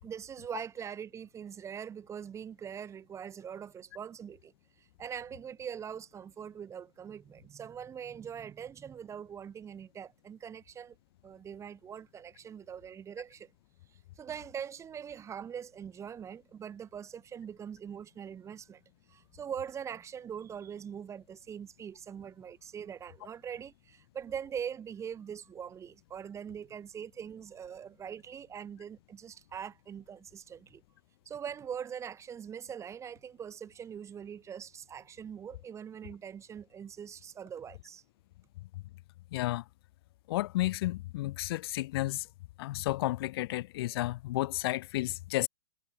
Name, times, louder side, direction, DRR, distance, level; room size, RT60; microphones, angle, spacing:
voice 1, 0.0-4.5 4.8-10.9 11.2-13.5 14.2-18.8 19.1-30.8 31.3-38.0, right 8 dB, 15° right, 6.1 m, -42 dB
voice 2, 39.3-39.6 40.3-42.3 42.6-45.5, left 17 dB, 50° left, 7.9 m, -32 dB
hypercardioid pair, 125°, 16 cm